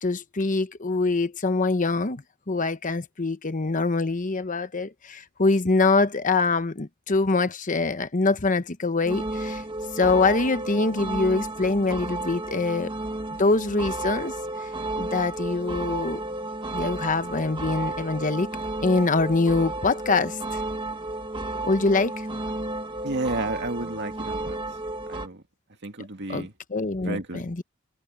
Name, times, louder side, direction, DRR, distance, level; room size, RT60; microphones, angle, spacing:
voice 1, 0.0-9.6 9.9-12.9 13.4-14.7 15.0-16.2 16.7-18.5 18.8-20.6 21.6-22.3 26.3-27.6, left 3 dB, 35° left, 1.0 m, -24 dB
sound 1, 9.0-25.3, right 2 dB, 25° right, 1.7 m, -32 dB
voice 2, 23.0-24.6 25.1-25.4 25.8-26.5 27.0-27.5, right 2 dB, 55° right, 2.3 m, -31 dB
head